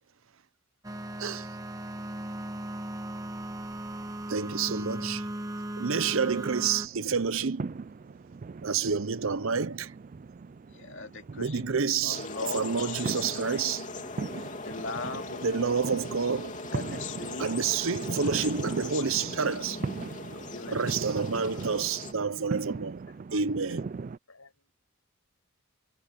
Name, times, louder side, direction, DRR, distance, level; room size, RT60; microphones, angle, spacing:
sound 1, 0.8-6.9, right 1 dB, 15° right, 1.4 m, -37 dB
voice 1, 4.3-5.2 5.8-7.8 8.6-9.9 11.4-12.2 12.5-13.9 15.4-16.5 17.4-19.8 20.7-23.0 23.3-24.0, right 5 dB, 65° right, 0.8 m, -29 dB
sound 2, 6.1-24.2, right 4 dB, 35° right, 0.3 m, -39 dB
voice 2, 10.7-11.7 12.0-13.6 14.0-16.0 16.7-17.8 18.1-19.5 20.5-21.0 21.3-21.4 23.7-23.9, left 3 dB, 60° left, 2.5 m, -41 dB
sound 3, 12.1-22.1, left 3 dB, 35° left, 3.2 m, -40 dB
voice 3, 19.9-21.2 22.2-22.8 23.1-23.7 24.3-24.7, left 3 dB, 75° left, 6.3 m, -58 dB
head